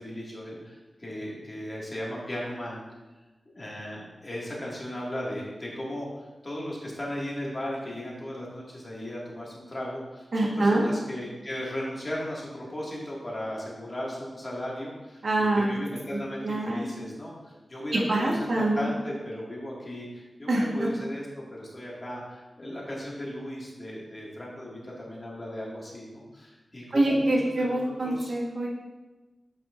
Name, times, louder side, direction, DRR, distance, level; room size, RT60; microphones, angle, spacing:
voice 1, 0.0-2.8 3.6-27.3 27.6-27.8 28.0-28.3, left 1 dB, 35° left, -5 dB, 2.2 m, -36 dB
voice 2, 10.3-10.8 15.2-15.8 16.1-16.9 18.1-18.9 20.5-20.9 26.9-28.7, right 1 dB, 65° right, -3 dB, 1.6 m, -25 dB
8.5 x 6.0 x 2.7 m, 1.1 s
wide cardioid pair, 75°, 0 cm